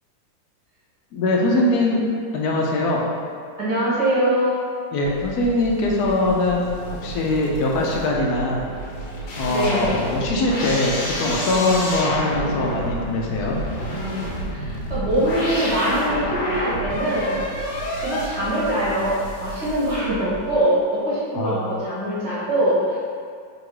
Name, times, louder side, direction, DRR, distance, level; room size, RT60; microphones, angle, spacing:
voice 1, 1.1-2.0 2.3-3.0 4.9-6.6 6.9-8.7 9.4-13.6 21.3-21.7, left 2 dB, 70° left, -2 dB, 0.9 m, -22 dB
voice 2, 3.6-4.6 9.5-10.0 14.5-17.4 18.0-23.0, right 1 dB, 40° right, -10 dB, 1.6 m, -23 dB
sound 1, 5.0-20.5, equal, 85° left, 1.5 m, -30 dB
3.8 x 2.8 x 4.7 m, 2.2 s
omnidirectional pair, 2.0 m